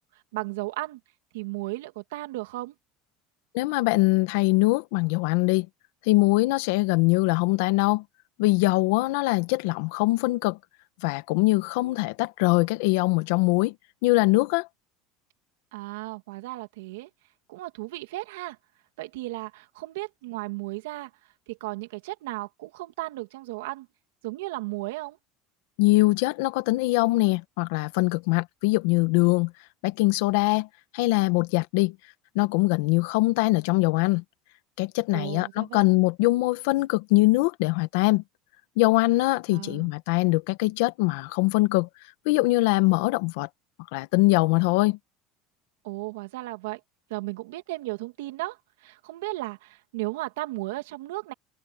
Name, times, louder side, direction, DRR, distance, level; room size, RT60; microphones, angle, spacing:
voice 1, 0.1-1.0 1.3-2.7 15.7-17.1 17.5-18.6 19.0-21.1 21.5-23.9 24.2-25.2 35.1-35.9 39.5-39.9 45.8-46.8 47.1-51.3, right 20 dB, 85° right, 2.7 m, -35 dB
voice 2, 3.5-5.7 6.1-8.0 8.4-10.6 11.0-13.7 14.0-14.7 25.8-29.5 29.8-30.7 30.9-31.9 32.3-34.2 34.8-38.2 38.8-41.9 42.2-43.5 43.9-45.0, left 22 dB, 75° left, 1.4 m, -22 dB
supercardioid pair, 115°, 0 cm